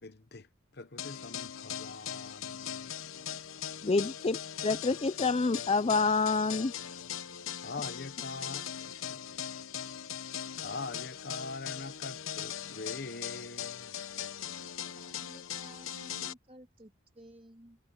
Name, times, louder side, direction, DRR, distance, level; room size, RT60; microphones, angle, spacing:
voice 1, 0.0-3.0 7.6-9.4 10.6-13.9, left 3 dB, 50° left, 1.0 m, -43 dB
sound 1, 1.0-16.3, left 9 dB, 85° left, 1.1 m, -40 dB
voice 2, 3.8-6.7, left 4 dB, 30° left, 0.4 m, -28 dB
voice 3, 14.9-17.8, right 1 dB, 25° right, 2.8 m, -54 dB
head